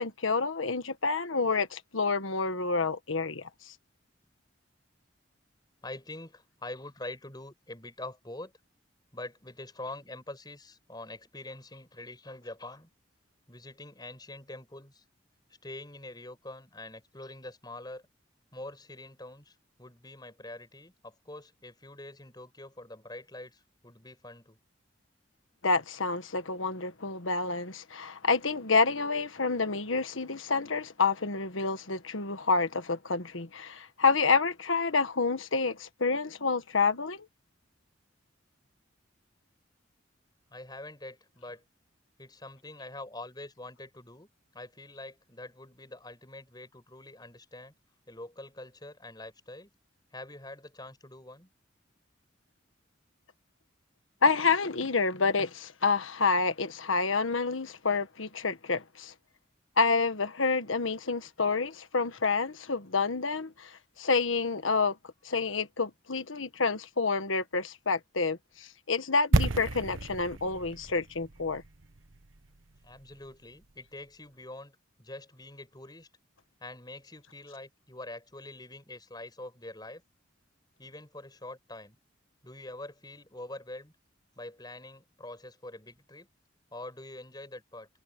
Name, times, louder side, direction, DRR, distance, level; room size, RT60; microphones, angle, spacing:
voice 1, 0.0-3.5 25.6-37.3 54.2-59.1 59.8-63.7 64.0-64.9 65.2-71.6, left 4 dB, 90° left, 1.5 m, -28 dB
voice 2, 5.8-8.5 9.1-12.9 13.5-15.0 15.6-18.0 18.5-24.6 40.5-41.6 42.2-44.3 44.5-47.7 48.1-49.7 50.1-51.5 72.8-76.1 76.6-80.0 80.8-82.0 82.4-83.9 84.4-86.3 86.7-87.9, left 2 dB, 20° left, 6.8 m, -45 dB
sound 1, 69.3-73.3 73.5-73.6, right 2 dB, 85° right, 1.2 m, -31 dB
head